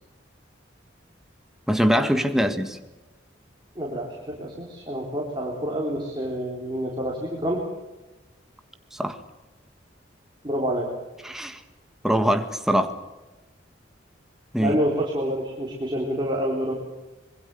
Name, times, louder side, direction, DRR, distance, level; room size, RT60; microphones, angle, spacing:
voice 1, 1.7-2.8 8.9-9.2 11.2-11.6 12.0-13.0 14.5-14.8, equal, ahead, 7 dB, 1.6 m, -23 dB
voice 2, 3.8-7.6 10.4-10.9 14.6-16.7, equal, 25° right, -2 dB, 3.7 m, -28 dB
25.5 x 22.5 x 6.8 m, 1.1 s
head